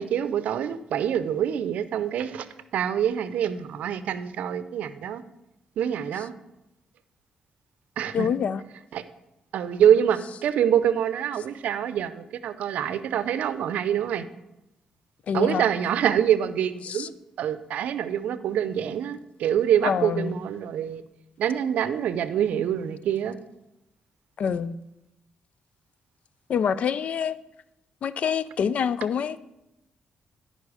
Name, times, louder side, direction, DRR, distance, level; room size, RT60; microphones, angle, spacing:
voice 1, 0.0-2.5 2.7-5.2 5.8-6.3 8.0-8.3 8.9-9.0 9.5-14.2 15.3-17.1 17.4-21.0 21.4-23.4, right 9 dB, 80° right, 0.5 m, -25 dB
voice 2, 8.1-8.6 15.3-15.6 16.8-17.1 19.8-20.3 24.4-24.7 26.5-27.4 28.0-29.4, left 7 dB, 65° left, 0.4 m, -26 dB
10.5 x 5.4 x 4.9 m
cardioid pair, 80°, 2 cm